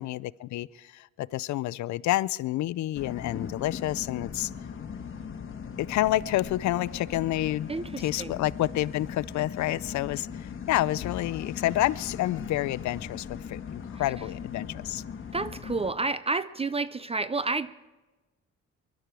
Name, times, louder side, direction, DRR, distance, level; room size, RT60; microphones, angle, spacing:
voice 1, 0.0-4.5 5.8-7.7 8.0-15.0, left 15 dB, 70° left, 20 dB, 0.5 m, -29 dB
sound 1, 2.9-15.9, left 7 dB, 40° left, 1.6 m, -39 dB
voice 2, 7.7-8.4 15.3-17.8, right 3 dB, 20° right, 15 dB, 0.5 m, -30 dB
Vehicle / Engine, 11.0-14.0, left 11 dB, 90° left, 1.1 m, -46 dB
23.0 x 12.0 x 4.7 m, 1.2 s
cardioid pair, 90°, 30 cm